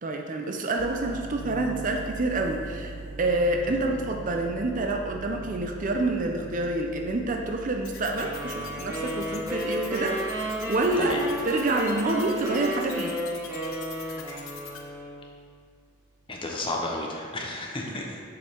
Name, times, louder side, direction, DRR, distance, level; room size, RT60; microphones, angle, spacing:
voice 1, 0.0-11.1 11.4-13.1, right 2 dB, 40° right, 3 dB, 0.5 m, -27 dB
sound 1, 0.8-15.9, right 2 dB, 80° right, 0.9 m, -43 dB
sound 2, 7.8-14.8, left 8 dB, 75° left, 0.9 m, -43 dB
sound 3, 8.1-15.3, equal, 10° right, 1.2 m, -33 dB
voice 2, 16.3-18.2, left 2 dB, 25° left, 0 dB, 0.8 m, -32 dB
7.0 x 5.3 x 4.5 m, 2.2 s
head